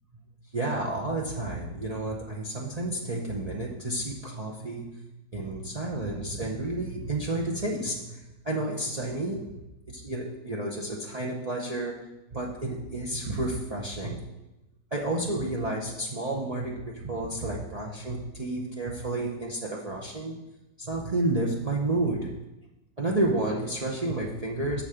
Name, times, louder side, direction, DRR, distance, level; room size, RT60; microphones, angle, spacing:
voice 1, 0.5-4.9 5.3-8.2 8.4-9.4 9.9-11.9 12.3-14.2 14.9-20.3 20.8-22.4 23.0-24.8, right 2 dB, 80° right, -3 dB, 0.3 m, -30 dB
6.7 x 6.1 x 4.9 m, 0.98 s
omnidirectional pair, 2.0 m